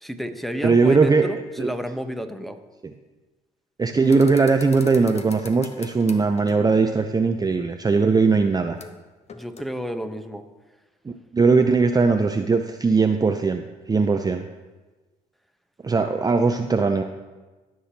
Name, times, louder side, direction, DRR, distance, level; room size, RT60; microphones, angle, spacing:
voice 1, 0.0-2.6 9.3-10.4, equal, ahead, 7 dB, 0.9 m, -31 dB
voice 2, 0.6-1.3 1.6-1.7 3.8-8.8 11.3-13.6 13.9-14.4 15.8-17.0, right 4 dB, 20° right, 6 dB, 0.6 m, -19 dB
squeaky dishwasher door, 4.0-6.8 8.8-9.0 9.3-9.7, left 5 dB, 35° left, 0.9 m, -42 dB
16.5 x 6.2 x 2.8 m, 1.2 s
hypercardioid pair, 55°, 18 cm